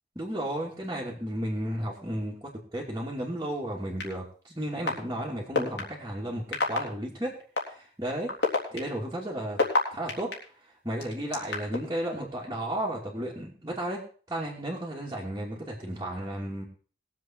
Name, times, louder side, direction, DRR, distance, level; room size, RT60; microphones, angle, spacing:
voice 1, 0.2-7.3 7.6-9.6 9.9-10.3 10.8-14.0 14.3-16.6, right 1 dB, 20° right, -7 dB, 2.7 m, -33 dB
sound 1, 4.0-4.1 4.9-5.0 5.5-5.8 6.5-6.8 7.6-7.7 8.3-10.3 11.0-11.8, left 3 dB, 70° left, 3.4 m, -25 dB
20.5 x 7.6 x 4.5 m, 0.41 s
head